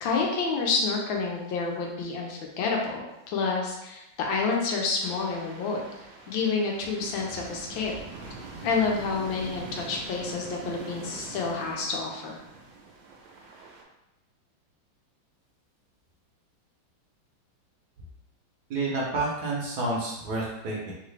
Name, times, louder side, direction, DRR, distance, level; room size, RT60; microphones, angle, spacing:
voice 1, 0.0-5.8 6.3-7.9 8.6-12.4, left 4 dB, 85° left, 0 dB, 1.5 m, -29 dB
sound 1, 5.0-13.8, right 3 dB, 80° right, 1.4 m, -43 dB
voice 2, 18.7-20.9, right 2 dB, 65° right, -3 dB, 1.1 m, -29 dB
3.6 x 2.4 x 3.2 m, 0.93 s
omnidirectional pair, 2.1 m